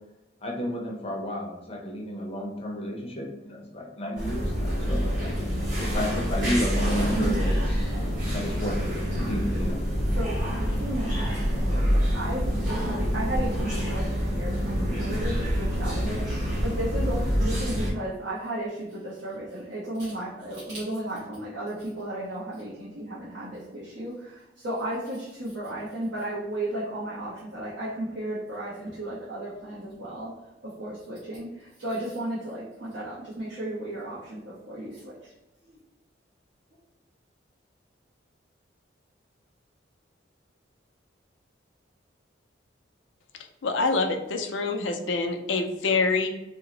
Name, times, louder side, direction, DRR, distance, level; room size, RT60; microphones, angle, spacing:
voice 1, 0.4-7.9 8.3-8.8 9.2-9.8, equal, 30° left, -1 dB, 0.6 m, -32 dB
sound 1, 4.2-17.9, equal, 40° right, 1.0 m, -26 dB
voice 2, 10.2-30.3 30.8-35.3 35.6-35.7, right 1 dB, 65° right, -9 dB, 0.9 m, -34 dB
voice 3, 43.6-46.3, left 3 dB, 80° left, 6 dB, 0.4 m, -26 dB
2.8 x 2.0 x 3.7 m, 0.95 s
head